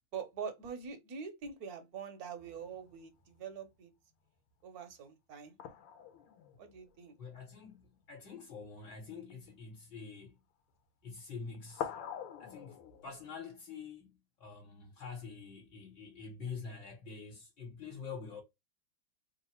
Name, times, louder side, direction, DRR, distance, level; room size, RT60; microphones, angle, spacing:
voice 1, 0.1-3.9 4.6-5.6 6.6-7.1, right 6 dB, 60° right, 1.0 m, -44 dB
sound 1, 2.4-3.5 5.6-7.9 8.7-8.9 9.2-9.9 10.8-11.2 11.5-13.4, left 9 dB, 80° left, 1.7 m, -46 dB
voice 2, 7.2-10.4 11.0-11.9 12.4-18.4, left 5 dB, 60° left, 1.9 m, -46 dB
3.7 x 2.4 x 4.3 m
omnidirectional pair, 2.4 m